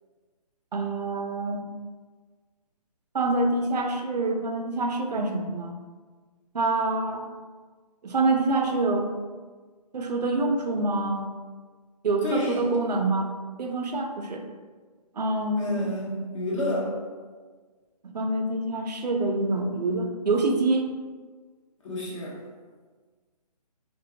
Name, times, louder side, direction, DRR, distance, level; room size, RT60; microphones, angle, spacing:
voice 1, 0.7-1.6 3.1-5.8 6.5-7.3 8.0-9.1 9.9-11.3 12.0-13.3 13.6-14.4 15.2-15.8 18.0-20.9, right 2 dB, 90° right, 4 dB, 0.4 m, -26 dB
voice 2, 12.2-12.7 15.6-16.9 21.8-22.4, left 1 dB, 50° left, -4 dB, 0.8 m, -30 dB
2.4 x 2.2 x 2.7 m, 1.4 s
figure-of-eight pair, 150°, 20 cm